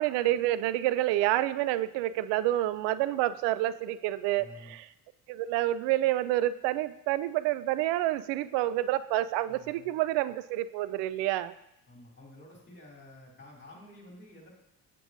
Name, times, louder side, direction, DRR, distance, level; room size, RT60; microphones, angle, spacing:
voice 1, 0.0-4.9 5.3-11.5, right 14 dB, 60° right, 15 dB, 0.5 m, -28 dB
voice 2, 4.4-4.8 9.5-9.9 11.9-14.5, left 1 dB, 25° left, -1 dB, 2.5 m, -51 dB
7.7 x 6.8 x 2.6 m, 0.84 s
hypercardioid pair, 60°, 48 cm